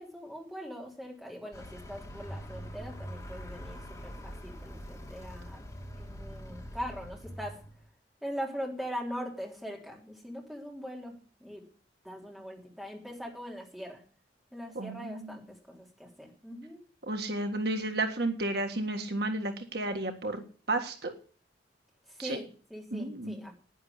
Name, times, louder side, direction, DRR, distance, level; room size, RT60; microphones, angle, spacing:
voice 1, 0.0-5.7 6.0-7.6 8.2-11.6 12.0-14.0 14.5-16.8 22.1-23.5, equal, ahead, -1 dB, 3.4 m, -41 dB
Vehicle, 1.5-7.9, equal, 20° left, 2.9 m, -44 dB
voice 2, 14.8-15.4 17.1-20.4 20.7-21.1 22.2-22.4 22.9-23.4, right 2 dB, 60° right, 5 dB, 1.8 m, -32 dB
11.0 x 10.0 x 8.2 m, 0.42 s
head